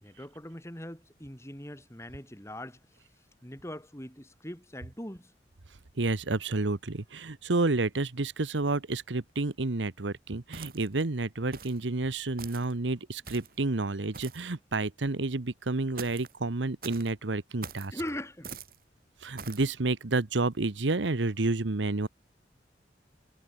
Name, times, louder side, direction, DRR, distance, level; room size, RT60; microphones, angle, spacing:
voice 1, 0.0-3.0 3.4-5.3 17.9-18.6, left 1 dB, 15° left, 4.4 m, -41 dB
voice 2, 6.0-17.9 19.2-22.1, right 2 dB, 85° right, 1.1 m, -30 dB
sound 1, 10.5-11.0 11.5-11.8 12.4-12.7 13.2-13.6 14.1-14.5 16.0-16.3 16.8-17.1 17.6-17.9 18.4-18.8 19.4-19.7, right 5 dB, 50° right, 3.5 m, -44 dB
head